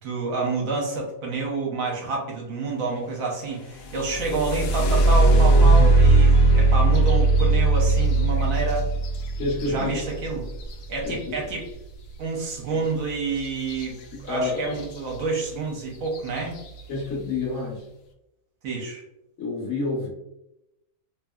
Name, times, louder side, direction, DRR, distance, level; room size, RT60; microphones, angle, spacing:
voice 1, 0.0-8.9 9.6-10.4 10.9-11.7 12.2-16.6 18.6-19.0, right 3 dB, 65° right, -1 dB, 1.1 m, -28 dB
sound 1, 3.8-11.6 13.7-13.8 14.3-14.8 15.4-15.5 16.1-16.4, right 2 dB, 85° left, 0.5 m, -19 dB
voice 2, 9.4-9.9 11.0-11.4 12.7-12.8 14.1-14.8 16.9-17.8 19.4-20.1, left 3 dB, 55° left, -3 dB, 1.1 m, -29 dB
2.9 x 2.5 x 2.2 m, 0.88 s
omnidirectional pair, 1.6 m